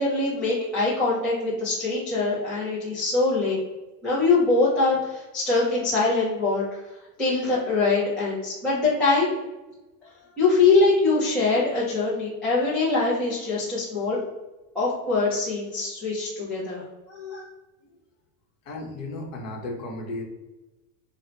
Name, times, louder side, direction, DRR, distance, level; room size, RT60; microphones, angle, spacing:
voice 1, 0.0-3.6 4.0-6.8 7.2-9.3 10.4-14.2 14.7-17.4, left 3 dB, ahead, -10 dB, 0.3 m, -23 dB
voice 2, 18.6-20.2, left 2 dB, 35° left, 0 dB, 0.8 m, -34 dB
4.4 x 2.1 x 3.8 m, 1.1 s
supercardioid pair, 170°, 44 cm